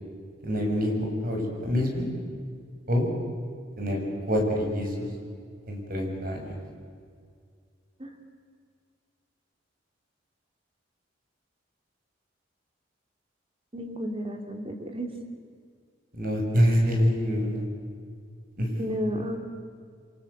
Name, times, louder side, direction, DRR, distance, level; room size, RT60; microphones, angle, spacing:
voice 1, 0.4-2.1 2.9-3.1 3.8-5.1 5.7-6.5 16.1-17.6 18.6-18.8, equal, 50° right, 2 dB, 6.3 m, -26 dB
voice 2, 13.7-15.1 18.8-19.4, equal, 30° right, 4 dB, 3.0 m, -32 dB
29.0 x 23.5 x 8.1 m, 2.1 s
head